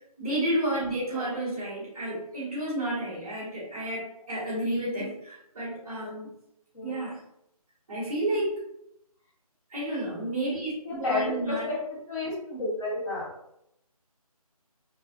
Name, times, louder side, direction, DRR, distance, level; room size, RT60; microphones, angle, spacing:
voice 1, 0.2-6.3 6.8-7.2 7.9-8.6 9.7-11.7, right 1 dB, 5° right, -14 dB, 0.5 m, -31 dB
voice 2, 10.8-11.8 12.1-13.3, left 3 dB, 50° left, -5 dB, 1.2 m, -31 dB
2.3 x 2.2 x 2.7 m, 0.78 s
figure-of-eight pair, 165°, 19 cm